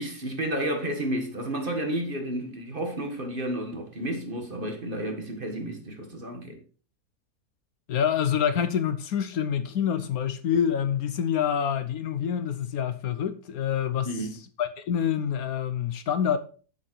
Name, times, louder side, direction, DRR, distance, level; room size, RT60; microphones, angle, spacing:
voice 1, 0.0-6.6 14.0-14.3, right 1 dB, 35° right, 1.8 m, -31 dB
voice 2, 7.9-14.1 14.6-16.4, left 8 dB, 70° left, 1.2 m, -26 dB
7.5 x 7.3 x 4.5 m
omnidirectional pair, 1.7 m